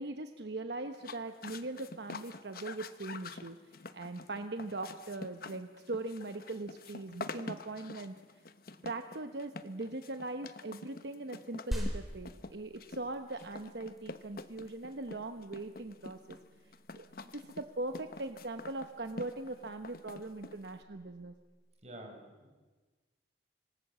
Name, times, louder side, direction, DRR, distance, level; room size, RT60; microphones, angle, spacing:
voice 1, 0.0-3.6 3.9-8.2 8.8-16.4 17.0-17.1 17.3-21.3, right 2 dB, 70° right, 7 dB, 1.0 m, -40 dB
sound 1, 0.9-20.8, left 3 dB, 55° left, 1.0 m, -47 dB
sound 2, 11.7-21.7, equal, ahead, 4.3 m, -45 dB
voice 2, 21.8-22.6, right 1 dB, 40° right, 2 dB, 5.0 m, -49 dB
26.5 x 19.0 x 7.5 m, 1.3 s
head